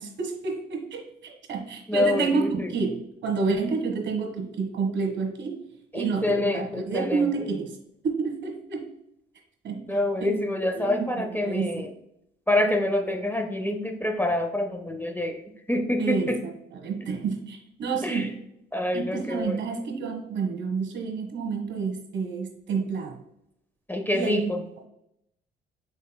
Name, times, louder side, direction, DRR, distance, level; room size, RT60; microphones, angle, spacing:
voice 1, 0.0-5.6 5.9-7.8 8.0-8.9 9.6-11.9 16.0-18.4 18.9-23.2 24.1-24.5, right 4 dB, 65° right, 3 dB, 1.2 m, -29 dB
voice 2, 1.9-2.7 5.9-7.2 9.9-11.9 12.5-15.4 15.7-16.4 18.0-18.3 18.7-19.6 23.9-24.6, left 1 dB, 10° left, 4 dB, 0.6 m, -26 dB
5.2 x 4.3 x 2.2 m, 0.81 s
cardioid pair, 90°, 20 cm